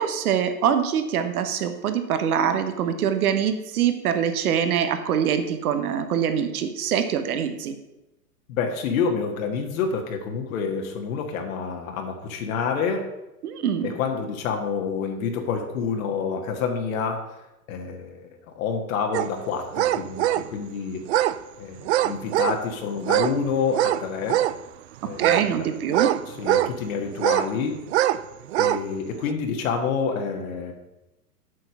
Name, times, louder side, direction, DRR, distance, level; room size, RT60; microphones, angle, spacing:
voice 1, 0.0-7.8 13.4-13.9 25.2-26.1, right 8 dB, 65° right, 9 dB, 1.3 m, -24 dB
voice 2, 8.5-13.1 13.8-17.2 17.7-18.3 18.5-21.0 21.6-24.4 25.0-25.7 26.3-27.8 28.6-30.7, left 5 dB, 60° left, 3 dB, 1.7 m, -28 dB
sound 1, 19.1-19.3 19.7-20.5 21.1-21.4 21.9-22.6 23.0-23.4 23.7-24.6 25.2-26.7 27.2-27.5 27.9-28.2 28.5-28.8 29.3-29.4, right 14 dB, 45° right, 0.4 m, -23 dB
7.9 x 5.9 x 6.2 m, 0.95 s
hypercardioid pair, 120°, 47 cm